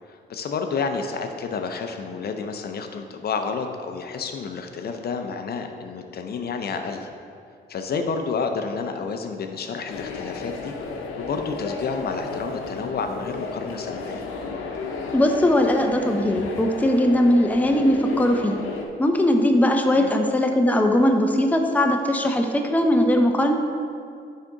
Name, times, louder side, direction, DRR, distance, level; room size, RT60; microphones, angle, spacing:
voice 1, 0.1-7.1 7.7-10.7 11.2-14.2 19.9-20.1, left 5 dB, 50° left, 5 dB, 0.6 m, -30 dB
sound 1, 9.9-18.8, left 3 dB, 85° left, 0.8 m, -33 dB
voice 2, 15.1-18.6 19.0-23.5, left 1 dB, 10° left, 4 dB, 0.6 m, -20 dB
9.4 x 3.7 x 3.9 m, 2.3 s
cardioid pair, 90°, 20 cm